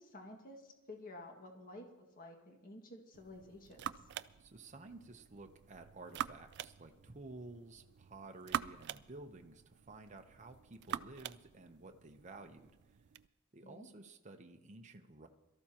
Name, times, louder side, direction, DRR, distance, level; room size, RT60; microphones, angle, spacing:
voice 1, 0.0-3.9 13.6-13.9, left 1 dB, 45° left, 2 dB, 1.9 m, -52 dB
sound 1, 3.1-13.3, right 9 dB, 55° right, 0.4 m, -46 dB
voice 2, 4.4-12.8 13.5-15.3, right 2 dB, 35° right, 4 dB, 0.8 m, -53 dB
22.5 x 13.5 x 2.9 m, 1.0 s
head